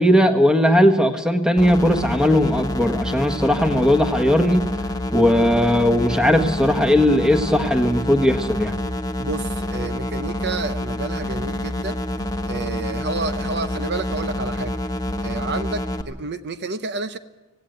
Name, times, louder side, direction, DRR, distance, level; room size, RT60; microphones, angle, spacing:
voice 1, 0.0-4.6 5.1-8.7, equal, 5° right, 6 dB, 1.5 m, -18 dB
sound 1, 1.6-16.0, left 1 dB, 20° left, 1.1 m, -27 dB
voice 2, 9.2-12.0 12.5-14.8 15.2-17.2, right 3 dB, 55° right, 10 dB, 0.8 m, -30 dB
17.5 x 17.0 x 9.3 m, 1.1 s
head